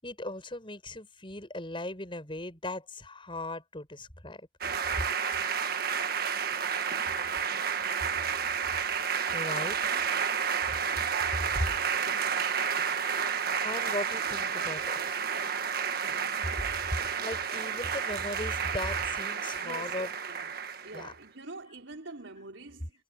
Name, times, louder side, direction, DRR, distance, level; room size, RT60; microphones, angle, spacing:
voice 1, 0.0-4.5 4.9-5.0 9.3-9.8 11.5-11.7 13.6-15.0 16.9-20.1 20.9-21.1, left 1 dB, 25° left, 7.3 m, -37 dB
sound 1, 4.6-21.1, right 7 dB, 55° right, 1.6 m, -31 dB
voice 2, 19.6-19.9 20.3-22.9, right 2 dB, 85° right, 4.9 m, -45 dB
head